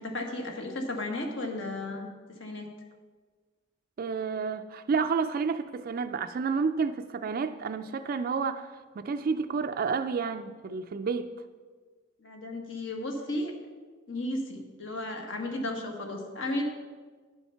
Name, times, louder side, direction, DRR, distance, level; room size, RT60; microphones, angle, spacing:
voice 1, 0.0-2.7 12.2-13.5 14.1-16.6, left 1 dB, 65° left, 2 dB, 1.5 m, -34 dB
voice 2, 4.0-11.3, right 5 dB, 45° right, 7 dB, 0.3 m, -30 dB
10.0 x 7.1 x 5.6 m, 1.5 s
head